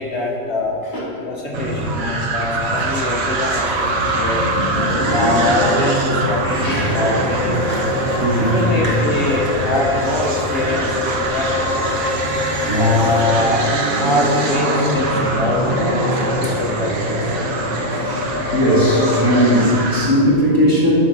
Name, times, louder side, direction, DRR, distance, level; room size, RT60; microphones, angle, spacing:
voice 1, 0.0-0.8 1.2-4.4 5.1-7.7 8.4-12.1 12.7-15.7 16.0-17.1, left 2 dB, 55° left, -2 dB, 1.2 m, -24 dB
sound 1, 1.5-20.2, right 2 dB, 85° right, 1.4 m, -22 dB
sound 2, 3.2-19.6, left 5 dB, 80° left, 1.1 m, -27 dB
sound 3, 3.5-13.2, right 1 dB, 65° right, 1.5 m, -34 dB
voice 2, 6.4-7.0 7.7-7.8 8.2-8.6 8.8-9.0 12.7-12.9 14.9-15.0 16.4-16.5 17.7-20.9, equal, 15° right, -7 dB, 2.2 m, -18 dB
11.5 x 4.3 x 6.1 m, 2.6 s
omnidirectional pair, 1.4 m